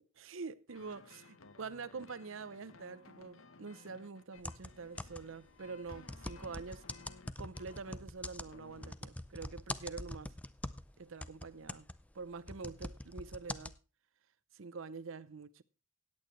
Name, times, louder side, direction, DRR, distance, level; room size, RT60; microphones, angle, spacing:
voice 1, 0.2-6.9 7.4-10.3 11.0-11.9 12.1-13.7 14.5-15.6, right 4 dB, 75° right, 0.7 m, -46 dB
sound 1, 0.7-8.9, left 4 dB, 80° left, 0.9 m, -58 dB
sound 2, 4.4-5.4 5.9-10.9 11.2-13.8, left 1 dB, 5° left, 0.4 m, -44 dB
17.0 x 8.8 x 3.1 m
head